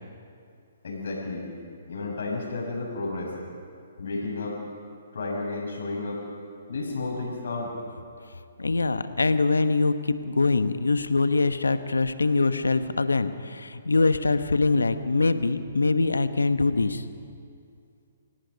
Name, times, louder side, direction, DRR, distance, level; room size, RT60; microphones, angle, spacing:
voice 1, 0.8-1.5 1.9-3.3 4.0-4.6 5.1-6.2 6.7-7.7, left 3 dB, 70° left, -1 dB, 6.2 m, -32 dB
voice 2, 8.6-17.0, left 3 dB, 85° left, 11 dB, 1.1 m, -23 dB
28.0 x 18.5 x 5.3 m, 2.4 s
hypercardioid pair, 135°, 0 cm